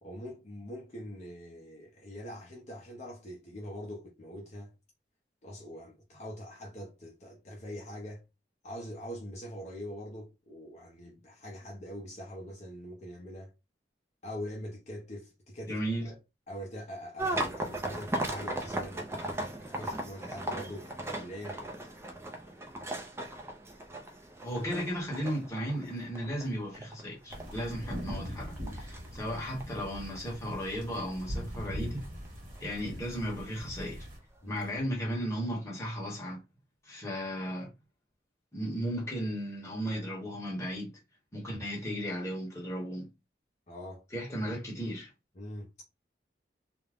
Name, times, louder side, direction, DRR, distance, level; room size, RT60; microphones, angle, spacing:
voice 1, 0.0-4.7 5.4-8.2 8.6-13.5 14.2-16.2 16.5-21.6 34.4-34.7 43.7-44.0 45.3-45.7, equal, 40° left, 0.6 m, -43 dB
voice 2, 15.7-16.1 24.4-32.0 32.6-34.1 34.5-36.4 36.8-37.7 38.5-40.9 41.3-43.1 44.1-45.1, equal, 15° left, 1.0 m, -35 dB
sound 1, 17.2-32.3 32.5-33.1 33.9-34.0 34.4-34.6, right 1 dB, 15° right, 0.4 m, -38 dB
sound 2, 27.3-34.2, equal, 50° right, 1.2 m, -41 dB
2.4 x 2.1 x 3.3 m
head